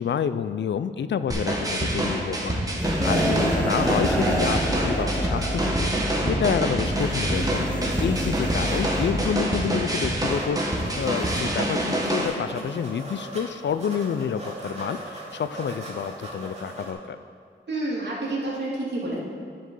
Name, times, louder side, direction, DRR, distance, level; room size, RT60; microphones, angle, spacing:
voice 1, 0.0-7.7 8.0-17.2, left 7 dB, 65° left, 13 dB, 0.4 m, -29 dB
sound 1, 1.3-12.3, right 1 dB, 20° right, 1.4 m, -26 dB
sound 2, 2.8-9.3, equal, 5° left, 1.1 m, -27 dB
sound 3, 10.3-10.5 10.8-13.4 13.7-16.9, right 1 dB, 35° right, 2.4 m, -39 dB
voice 2, 17.7-19.2, right 2 dB, 60° right, -6 dB, 2.5 m, -29 dB
9.9 x 5.2 x 5.4 m, 2.3 s
wide cardioid pair, 85°, 20 cm